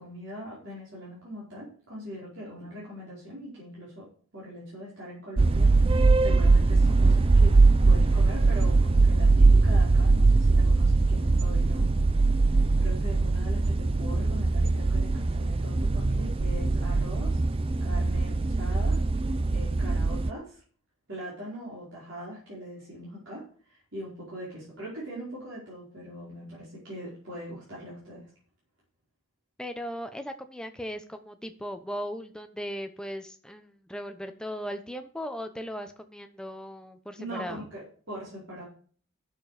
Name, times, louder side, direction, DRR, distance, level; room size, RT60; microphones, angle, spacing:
voice 1, 0.0-4.1 4.3-7.6 7.8-11.9 12.4-17.4 17.8-20.6 21.1-28.3 37.2-38.6, equal, 60° right, -8 dB, 5.0 m, -41 dB
sound 1, 5.4-20.3, right 3 dB, 25° right, 0.4 m, -21 dB
voice 2, 29.6-37.6, equal, 5° left, 7 dB, 0.8 m, -37 dB
11.0 x 6.9 x 5.0 m, 0.44 s
head